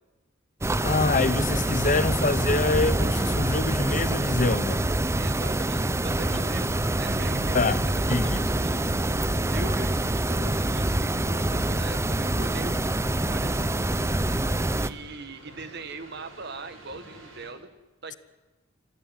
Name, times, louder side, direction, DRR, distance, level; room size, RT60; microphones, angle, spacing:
sound 1, 0.6-14.9, right 1 dB, 15° right, 0.7 m, -26 dB
voice 1, 0.8-4.9 7.5-7.8 8.1-8.4, left 3 dB, 40° left, 0.8 m, -25 dB
voice 2, 5.2-7.8 8.1-9.0 9.5-13.8 14.8-17.7 18.0-18.2, right 3 dB, 55° right, 1.9 m, -41 dB
sound 2, 6.2-17.5, right 2 dB, 75° right, 6.9 m, -48 dB
26.5 x 15.5 x 9.8 m
head